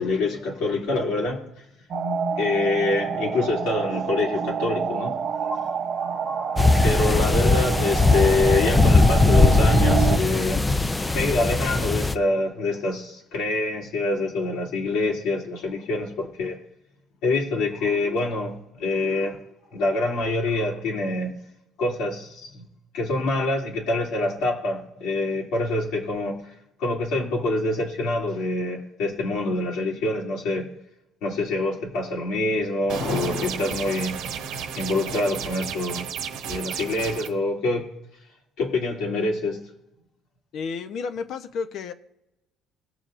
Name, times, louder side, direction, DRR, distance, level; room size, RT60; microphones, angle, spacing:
voice 1, 0.0-1.6 2.4-5.8 6.0-10.7 11.1-16.6 17.2-19.4 19.7-21.4 21.8-22.7 22.9-26.4 26.8-30.7 31.2-34.2 34.7-36.1 36.4-37.9 38.6-39.6, left 2 dB, 80° left, -3 dB, 2.7 m, -26 dB
sound 1, 1.9-10.2, right 6 dB, 45° right, 0.7 m, -28 dB
sound 2, 6.6-12.1, left 3 dB, 10° left, 0.4 m, -19 dB
sound 3, 32.9-37.3, right 7 dB, 80° right, 1.1 m, -33 dB
voice 2, 40.5-41.9, left 5 dB, 55° left, 9 dB, 0.8 m, -31 dB
21.0 x 7.0 x 2.5 m, 0.87 s
cardioid pair, 155°, 0 cm